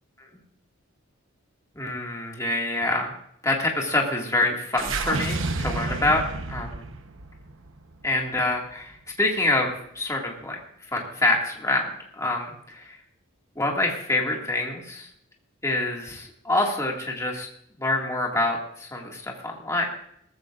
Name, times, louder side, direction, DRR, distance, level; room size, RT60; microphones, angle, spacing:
voice 1, 1.8-3.1 3.4-6.8 8.0-10.6 10.9-11.9 12.2-12.8 13.6-15.1 15.6-17.5 17.8-19.9, left 2 dB, 15° left, -1 dB, 2.1 m, -26 dB
sound 1, 4.8-9.1, right 3 dB, 70° right, 1.0 m, -31 dB
19.0 x 15.0 x 2.5 m, 0.70 s
head